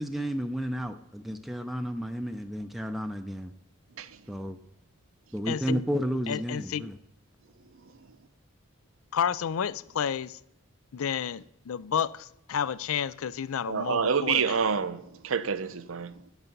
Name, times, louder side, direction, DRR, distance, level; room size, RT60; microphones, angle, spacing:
voice 1, 0.0-3.5 4.3-4.6 5.3-7.0, equal, ahead, 0.4 m, -32 dB
voice 2, 5.5-5.8 6.3-6.9 9.1-10.4 10.9-14.5, left 8 dB, 80° left, 0.4 m, -31 dB
voice 3, 13.7-16.1, right 6 dB, 75° right, 0.6 m, -28 dB
10.0 x 8.1 x 5.3 m
head